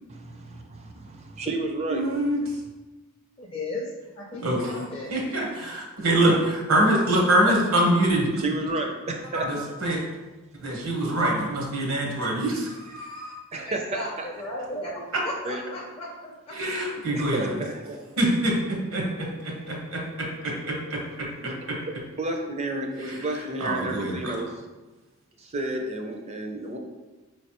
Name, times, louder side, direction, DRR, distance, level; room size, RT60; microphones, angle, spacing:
voice 1, 0.1-2.0 7.4-7.6 8.3-9.8 13.5-14.3 15.4-15.6 17.1-18.0 21.4-24.5 25.4-26.8, right 2 dB, 30° right, 3 dB, 0.4 m, -31 dB
voice 2, 1.9-2.4 4.4-4.7 5.1-8.3 9.3-10.0 10.6-13.4 16.5-17.5 18.2-21.8 23.0-24.3, right 1 dB, 80° right, -1 dB, 1.0 m, -25 dB
voice 3, 3.4-3.9 4.2-5.1 13.7-16.5, left 1 dB, 25° left, -4 dB, 0.4 m, -35 dB
4.7 x 3.1 x 2.9 m, 1.2 s
head